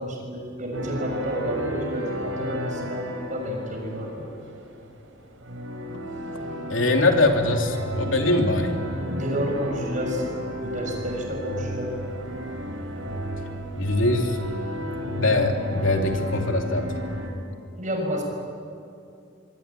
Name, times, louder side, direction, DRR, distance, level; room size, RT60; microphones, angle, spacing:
voice 1, 0.0-4.3 9.1-10.2 10.5-11.9 17.8-18.2, equal, 40° right, 1 dB, 6.7 m, -30 dB
sound 1, 0.7-17.3, equal, 80° right, 4.8 m, -33 dB
voice 2, 6.7-8.8 13.7-14.4 15.1-17.0, left 2 dB, 85° left, 3 dB, 3.1 m, -22 dB
26.5 x 22.0 x 8.7 m, 2.5 s
head